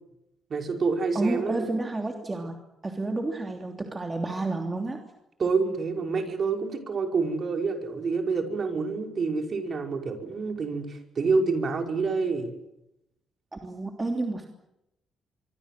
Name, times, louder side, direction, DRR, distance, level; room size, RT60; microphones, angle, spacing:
voice 1, 0.5-1.7 5.4-12.5, right 4 dB, 45° right, 3 dB, 5.3 m, -27 dB
voice 2, 1.1-2.6 2.8-5.0 13.5-14.5, right 2 dB, 20° right, 3 dB, 3.0 m, -30 dB
24.5 x 24.5 x 7.7 m, 0.87 s
cardioid pair, 90°, 0 cm